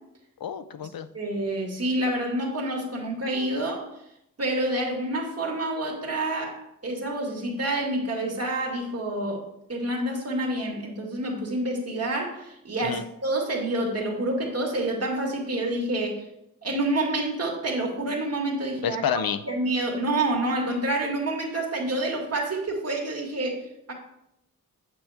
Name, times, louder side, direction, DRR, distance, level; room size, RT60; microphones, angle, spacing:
voice 1, 0.4-1.1 12.8-13.0 18.8-19.4, left 8 dB, 80° left, 12 dB, 0.6 m, -28 dB
voice 2, 1.1-3.9 4.4-9.4 9.7-16.3 16.6-19.0 19.4-23.9, right 1 dB, 45° right, -1 dB, 2.2 m, -28 dB
9.0 x 7.8 x 3.5 m, 0.81 s
wide cardioid pair, 125°, 35 cm